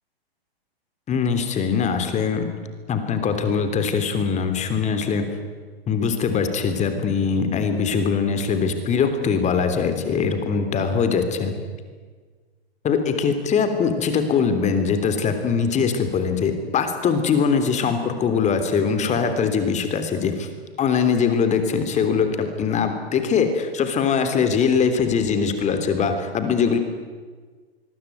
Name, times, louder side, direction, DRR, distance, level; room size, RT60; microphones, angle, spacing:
voice 1, 1.1-2.5 2.9-5.3 5.9-11.5 12.8-20.5 20.8-26.8, left 6 dB, 20° left, 8 dB, 3.4 m, -22 dB
25.0 x 21.5 x 9.5 m, 1.5 s
figure-of-eight pair, 115°, 32 cm